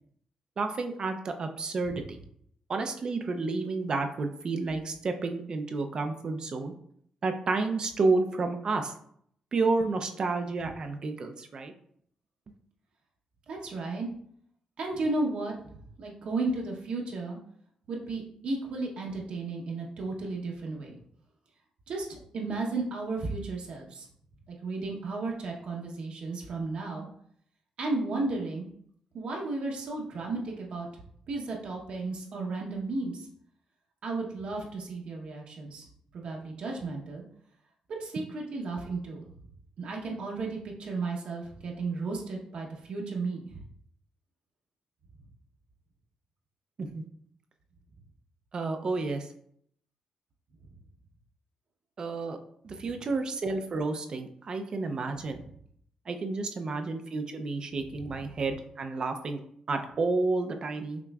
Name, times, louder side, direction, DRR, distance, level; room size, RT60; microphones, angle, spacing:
voice 1, 0.6-2.2 2.7-6.7 7.2-8.9 9.5-11.7 46.8-47.0 48.5-49.3 52.0-52.4 52.6-55.4 56.1-59.4 59.7-61.0, right 3 dB, 40° right, 6 dB, 0.5 m, -30 dB
voice 2, 13.5-14.1 14.8-15.7 16.0-17.4 17.9-21.0 21.9-24.1 24.6-27.1 27.8-28.7 29.1-30.9 31.3-33.3 34.0-35.9 36.1-37.2 38.0-39.2 39.8-43.6 58.0-58.3, right 3 dB, 60° right, -1 dB, 1.0 m, -34 dB
5.8 x 3.0 x 2.4 m, 0.66 s
cardioid pair, 125°, 2 cm